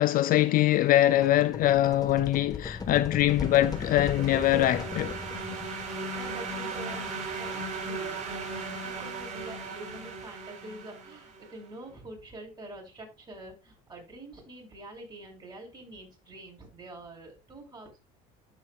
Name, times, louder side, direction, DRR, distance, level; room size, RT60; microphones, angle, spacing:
voice 1, 0.0-5.1, left 13 dB, 50° left, 0.5 m, -23 dB
sound 1, 1.0-5.9, left 4 dB, 20° left, 1.4 m, -38 dB
sound 2, 2.9-11.5, right 3 dB, 40° right, 3.9 m, -37 dB
voice 2, 6.1-18.0, right 1 dB, 25° right, 5.7 m, -46 dB
15.5 x 5.6 x 2.4 m
supercardioid pair, 100°, 19 cm